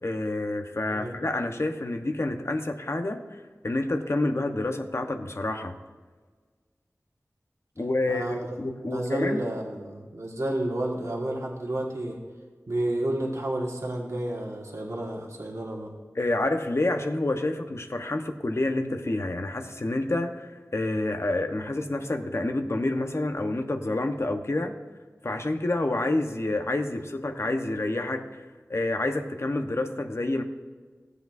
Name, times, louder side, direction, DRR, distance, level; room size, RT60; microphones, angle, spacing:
voice 1, 0.0-3.2 3.6-5.7 7.8-9.4 16.1-24.7 25.2-28.4 28.7-30.4, left 2 dB, 55° left, 5 dB, 0.9 m, -28 dB
voice 2, 8.1-12.2 12.7-15.9, right 1 dB, 65° right, -1 dB, 1.6 m, -31 dB
16.5 x 8.2 x 2.6 m, 1.5 s
wide cardioid pair, 45°, 6 cm